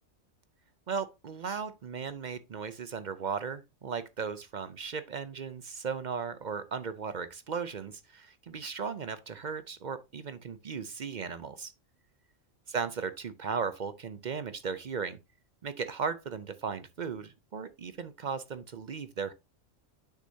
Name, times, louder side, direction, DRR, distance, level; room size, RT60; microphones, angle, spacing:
voice 1, 0.9-11.7 12.7-15.2 15.6-19.3, right 5 dB, 50° right, 0.6 m, -36 dB
8.3 x 6.5 x 2.7 m
omnidirectional pair, 1.3 m